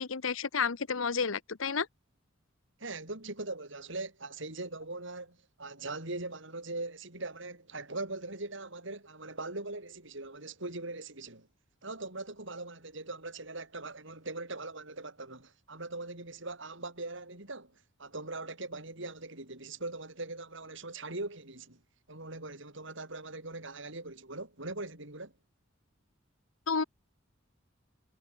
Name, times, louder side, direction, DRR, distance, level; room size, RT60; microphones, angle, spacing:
voice 1, 0.0-1.9 26.7-26.8, left 5 dB, 80° left, 1.0 m, -31 dB
voice 2, 2.8-11.5 11.8-21.8 22.1-25.3, right 2 dB, 65° right, 7.1 m, -41 dB
head